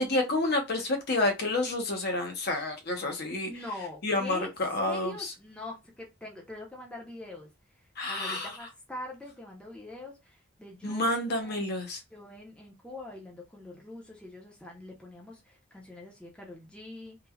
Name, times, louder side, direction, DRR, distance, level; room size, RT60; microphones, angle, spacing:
voice 1, 0.0-3.5 4.0-5.3 8.0-8.7 10.8-12.0, left 2 dB, 50° left, 0.8 m, -29 dB
voice 2, 3.4-4.5 4.8-7.5 7.8-11.7 12.1-17.2, left 2 dB, 5° left, 0.6 m, -43 dB
3.2 x 2.2 x 2.3 m
head